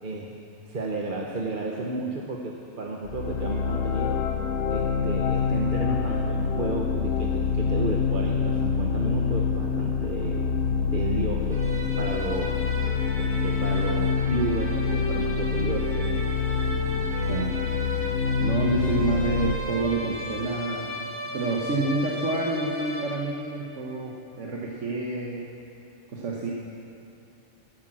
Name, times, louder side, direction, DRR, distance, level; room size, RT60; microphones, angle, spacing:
voice 1, 0.0-0.4 0.7-4.2 4.7-10.4 10.9-11.7 12.0-12.6 13.1-16.1, right 3 dB, 40° right, -1 dB, 1.1 m, -32 dB
sound 1, 3.1-19.5, left 6 dB, 65° left, 1.1 m, -26 dB
sound 2, 11.5-23.6, equal, 10° left, 1.5 m, -35 dB
voice 2, 18.1-25.5 26.1-26.5, right 2 dB, 65° right, -2 dB, 1.4 m, -28 dB
12.5 x 12.0 x 7.5 m, 2.9 s
omnidirectional pair, 1.4 m